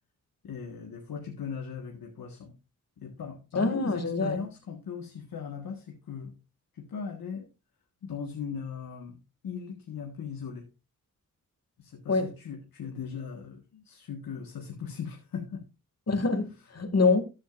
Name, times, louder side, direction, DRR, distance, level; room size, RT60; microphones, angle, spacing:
voice 1, 0.4-2.6 3.0-6.3 6.7-7.5 8.0-10.7 11.8-15.6, left 6 dB, 90° left, 1.6 m, -38 dB
voice 2, 3.5-4.4 12.1-12.3 16.1-17.2, left 3 dB, 45° left, 2.3 m, -25 dB
14.0 x 9.1 x 2.5 m
cardioid pair, 50°, 34 cm